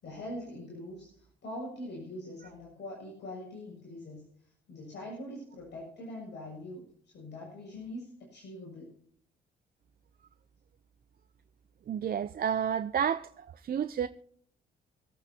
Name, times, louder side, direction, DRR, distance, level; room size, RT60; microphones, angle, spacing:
voice 1, 0.0-8.9, left 1 dB, 60° left, 6.7 m, -43 dB
voice 2, 11.9-14.1, right 8 dB, 50° right, 0.7 m, -31 dB
26.0 x 8.7 x 2.9 m
cardioid pair, 90°, 20 cm